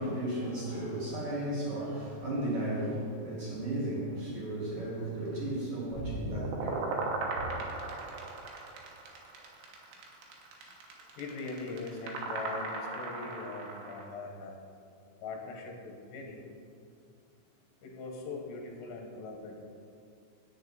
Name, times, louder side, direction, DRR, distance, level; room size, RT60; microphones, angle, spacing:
voice 1, 0.0-7.1 7.4-7.6, right 1 dB, 45° right, -5 dB, 1.9 m, -35 dB
sound 1, 5.9-14.0, right 3 dB, 85° right, 3.5 m, -37 dB
voice 2, 11.2-14.6 15.2-16.5 17.8-19.7, left 3 dB, 75° left, 1 dB, 3.1 m, -41 dB
10.0 x 8.8 x 4.0 m, 2.4 s
omnidirectional pair, 5.2 m